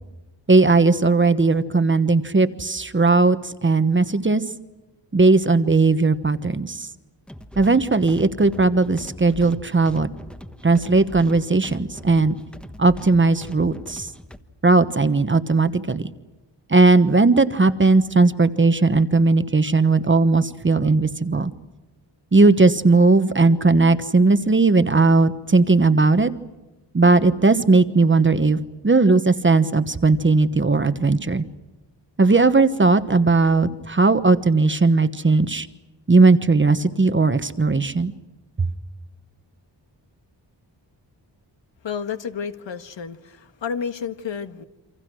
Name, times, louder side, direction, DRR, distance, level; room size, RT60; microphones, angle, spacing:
voice 1, 0.5-4.4 5.1-6.9 7.6-10.1 10.6-12.4 12.8-14.1 14.6-16.1 16.7-21.5 22.3-26.3 26.9-31.4 32.2-35.7 36.1-38.1 38.6-38.7, right 3 dB, 25° right, 11 dB, 1.1 m, -17 dB
sound 1, 7.3-14.4, equal, ahead, 1.1 m, -40 dB
voice 2, 41.8-44.6, left 7 dB, 75° left, 9 dB, 1.7 m, -31 dB
29.0 x 26.0 x 6.3 m, 1.1 s
wide cardioid pair, 165°, 45 cm